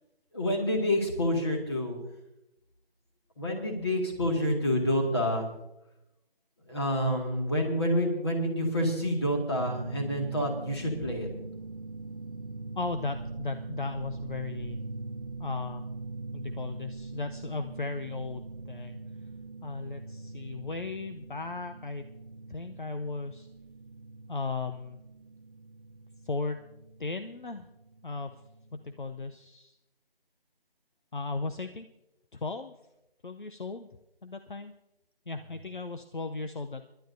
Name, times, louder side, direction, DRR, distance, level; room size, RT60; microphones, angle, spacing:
voice 1, 0.3-2.0 3.4-5.5 6.7-11.3, left 1 dB, 25° left, 0 dB, 2.1 m, -28 dB
sound 1, 9.6-29.1, right 3 dB, 40° right, 0.7 m, -42 dB
voice 2, 12.8-14.8 15.4-15.8 16.3-19.0 19.6-22.0 22.5-23.5 24.3-25.0 26.2-26.6 27.0-27.7 28.0-28.4 28.7-29.8 31.1-31.9 32.3-32.7 33.2-33.9 34.2-34.7 35.3-36.9, left 3 dB, 55° left, 7 dB, 0.7 m, -36 dB
27.0 x 11.5 x 2.7 m, 0.89 s
figure-of-eight pair, 175°, 30 cm